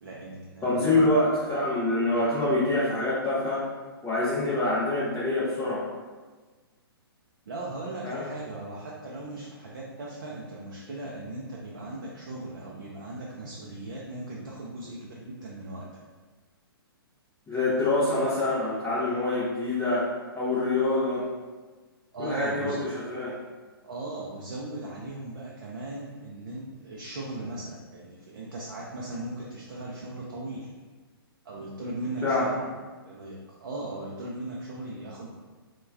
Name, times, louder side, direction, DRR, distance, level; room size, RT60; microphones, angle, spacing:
voice 1, 0.0-0.9 7.5-15.9 22.1-22.8 23.8-30.7 31.4-32.7 33.0-35.3, right 2 dB, 55° right, -4 dB, 0.4 m, -38 dB
voice 2, 0.6-3.7 4.0-5.9 8.0-8.3 17.5-20.1 20.3-21.3 22.2-23.4 32.2-32.5, left 2 dB, 10° left, -11 dB, 0.5 m, -26 dB
2.2 x 2.1 x 3.3 m, 1.4 s
figure-of-eight pair, 125°, 13 cm